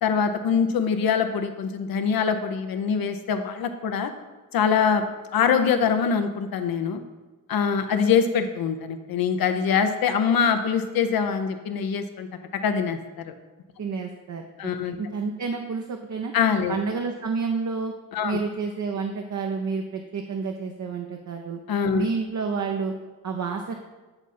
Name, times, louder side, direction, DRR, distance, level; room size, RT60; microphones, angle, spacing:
voice 1, 0.0-4.1 4.5-5.1 5.3-7.0 7.5-12.3 12.6-13.0 13.2-13.3 14.6-15.0 16.3-16.8 18.1-18.4 21.7-22.0, left 6 dB, 75° left, 8 dB, 0.7 m, -23 dB
voice 2, 13.8-14.7 15.0-16.3 16.7-17.9 18.2-21.6 21.9-22.9 23.2-23.7, right 5 dB, 50° right, 3 dB, 0.7 m, -29 dB
8.9 x 3.6 x 4.2 m, 1.2 s
cardioid pair, 55°, 36 cm